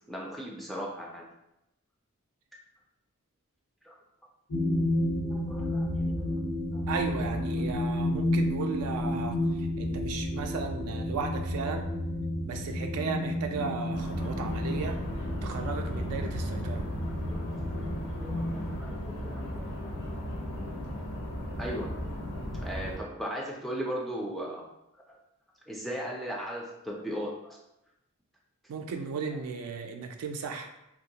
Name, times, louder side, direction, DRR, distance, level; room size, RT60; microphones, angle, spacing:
voice 1, 0.1-1.3 3.8-4.0 5.2-6.3 6.7-6.8 7.1-7.3 7.6-7.7 10.4-10.5 17.3-17.4 18.2-19.7 21.6-22.2 22.5-24.7 25.1-25.2 25.7-27.6, equal, ahead, -3 dB, 0.3 m, -38 dB
sound 1, 4.5-18.8, left 1 dB, 85° left, 1.1 m, -31 dB
voice 2, 6.9-11.9 12.4-15.0 15.4-16.9 19.2-19.3 28.7-30.7, right 5 dB, 75° right, 5 dB, 0.3 m, -35 dB
sound 2, 13.9-23.0, equal, 55° left, 0.6 m, -36 dB
3.2 x 2.2 x 2.7 m, 0.87 s
head